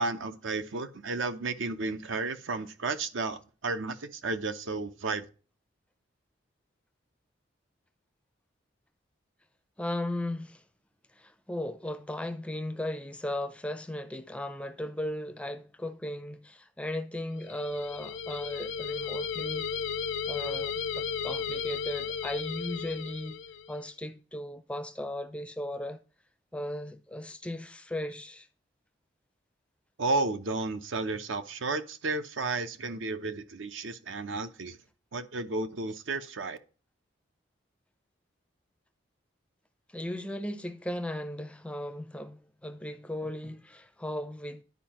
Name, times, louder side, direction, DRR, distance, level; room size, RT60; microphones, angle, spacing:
voice 1, 0.0-5.2 30.0-34.8 35.1-36.6, right 3 dB, 75° right, 0.7 m, -32 dB
voice 2, 9.8-10.6 11.1-19.7 20.3-23.4 23.7-26.0 26.5-28.5 39.9-44.6, left 1 dB, 5° left, 0.4 m, -36 dB
sound 1, 17.4-23.8, left 6 dB, 75° left, 0.4 m, -35 dB
10.5 x 4.7 x 2.9 m
head